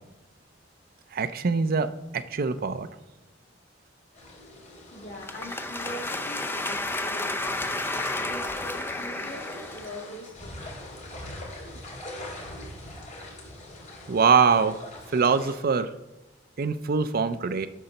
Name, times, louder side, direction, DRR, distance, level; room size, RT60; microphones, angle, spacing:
voice 1, 1.1-1.9 2.1-2.9 14.1-14.8 15.1-15.9 16.6-17.7, right 5 dB, 50° right, 12 dB, 0.5 m, -23 dB
sound 1, 4.1-15.6, left 1 dB, 45° left, 3.3 m, -43 dB
voice 2, 4.9-11.2, equal, 80° left, -1 dB, 2.5 m, -43 dB
sound 2, 5.2-10.0, left 2 dB, 10° left, 0.5 m, -32 dB
10.0 x 4.0 x 6.5 m, 1.0 s
head